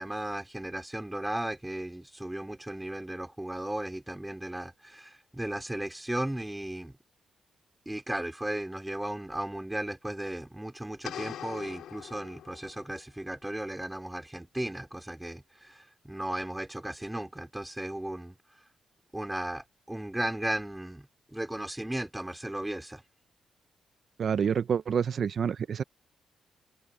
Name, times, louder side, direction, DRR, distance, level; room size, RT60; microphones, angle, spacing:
voice 1, 0.0-7.0 7.9-18.3 19.1-23.0, right 1 dB, 5° right, 3.9 m, -35 dB
sound 1, 11.0-13.0, left 10 dB, 85° left, 5.4 m, -42 dB
voice 2, 24.2-25.8, right 7 dB, 55° right, 0.7 m, -28 dB
cardioid pair, 115°, 0 cm